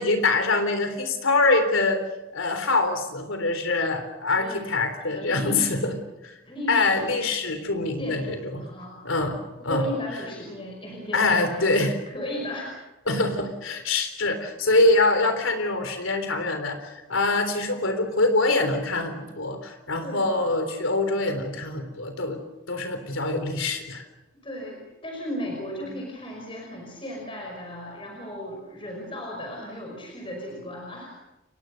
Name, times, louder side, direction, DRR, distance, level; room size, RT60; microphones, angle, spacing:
voice 1, 0.0-2.0 2.3-6.0 6.7-8.6 9.0-9.9 11.1-11.9 13.1-22.4 22.7-24.0 25.9-26.0, left 2 dB, 75° left, 7 dB, 3.7 m, -24 dB
voice 2, 4.3-4.6 5.1-6.0 6.5-7.0 8.0-9.0 9.7-11.8 12.1-12.7 13.1-13.2 20.0-20.3 24.4-31.1, equal, 25° left, 0 dB, 5.5 m, -35 dB
29.5 x 23.5 x 6.6 m, 1.0 s
head